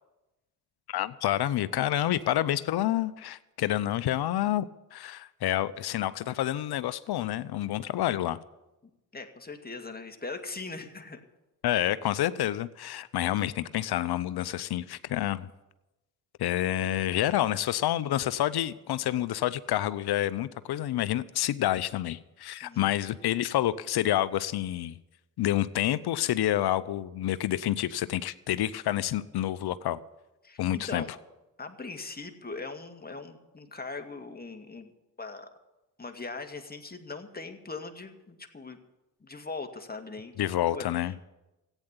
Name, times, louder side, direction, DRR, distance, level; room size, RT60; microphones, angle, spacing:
voice 1, 0.9-4.7 4.9-8.4 11.6-15.5 16.4-25.0 25.4-30.0 30.6-31.0 40.4-41.1, left 13 dB, 60° left, 0.8 m, -28 dB
voice 2, 9.1-11.2 22.6-22.9 30.4-31.1 31.6-34.9 35.2-35.5 36.0-38.8 39.2-41.3, left 3 dB, 20° left, 2.1 m, -40 dB
15.0 x 9.1 x 8.4 m
hypercardioid pair, 45°, 43 cm